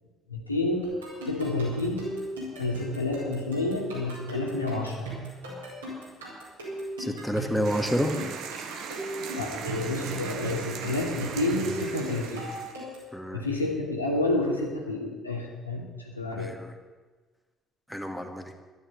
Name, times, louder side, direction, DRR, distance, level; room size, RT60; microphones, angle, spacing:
voice 1, 0.3-0.9 1.2-2.1 2.6-5.1 9.4-12.4 13.3-16.5, left 2 dB, 85° left, -1 dB, 2.4 m, -29 dB
sound 1, 0.8-13.1, right 1 dB, 80° right, 5.5 m, -38 dB
voice 2, 7.0-8.1 13.1-13.5 16.3-16.7 17.9-18.5, equal, ahead, 4 dB, 2.2 m, -29 dB
sound 2, 7.6-12.7, right 6 dB, 60° right, 1.5 m, -38 dB
13.0 x 11.0 x 9.3 m, 1.3 s
figure-of-eight pair, 50°, 0 cm